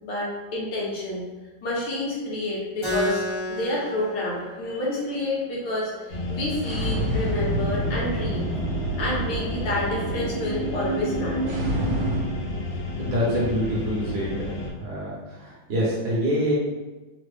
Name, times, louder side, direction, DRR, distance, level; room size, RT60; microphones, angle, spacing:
voice 1, 0.0-1.2 1.6-8.5 9.0-11.6, left 1 dB, 70° left, -5 dB, 1.4 m, -29 dB
Keyboard (musical), 2.8-7.9, left 1 dB, 40° left, 0.4 m, -34 dB
sound 1, 6.1-14.7, left 1 dB, 85° left, 1.5 m, -32 dB
sound 2, 6.6-12.2, right 1 dB, 80° right, 1.4 m, -28 dB
voice 2, 13.0-14.5 14.8-16.5, equal, 65° right, -6 dB, 1.1 m, -26 dB
3.7 x 2.0 x 3.2 m, 1.2 s
omnidirectional pair, 2.2 m